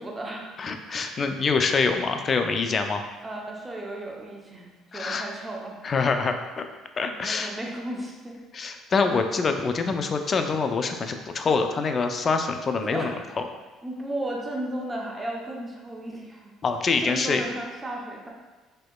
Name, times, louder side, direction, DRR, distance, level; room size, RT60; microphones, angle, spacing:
voice 1, 0.0-0.4 3.2-6.1 7.2-8.4 12.8-13.1 13.8-16.5 17.0-18.3, right 1 dB, 20° right, -1 dB, 0.6 m, -34 dB
voice 2, 0.6-3.0 4.9-5.3 5.8-6.6 7.0-7.5 8.5-13.1 16.6-17.4, left 4 dB, 40° left, 6 dB, 0.3 m, -25 dB
4.2 x 2.8 x 2.2 m, 1.3 s
supercardioid pair, 85°, 0 cm